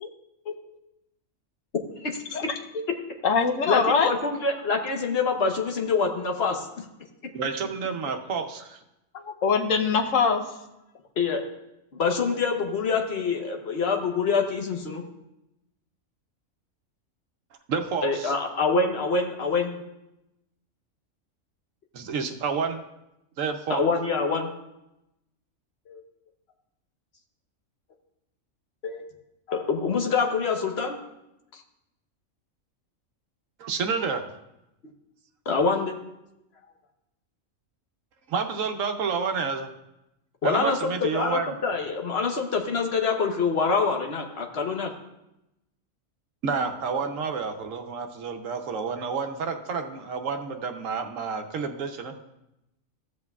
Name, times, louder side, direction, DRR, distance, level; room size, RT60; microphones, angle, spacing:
voice 1, 2.0-2.5 3.6-6.9 11.2-11.4 11.9-15.0 18.0-19.8 23.7-24.5 25.9-26.0 28.8-29.0 29.5-31.0 31.5-31.6 35.5-35.9 40.4-44.9, left 4 dB, 55° left, 3 dB, 1.2 m, -25 dB
voice 2, 3.2-4.1 9.1-10.5, left 5 dB, 75° left, 5 dB, 1.1 m, -23 dB
voice 3, 7.3-8.8 17.7-18.3 21.9-22.8 23.4-23.8 33.6-34.3 38.3-39.7 40.4-41.5 46.4-52.1, right 5 dB, 75° right, 6 dB, 1.1 m, -29 dB
15.0 x 7.8 x 2.3 m, 0.90 s
omnidirectional pair, 1.4 m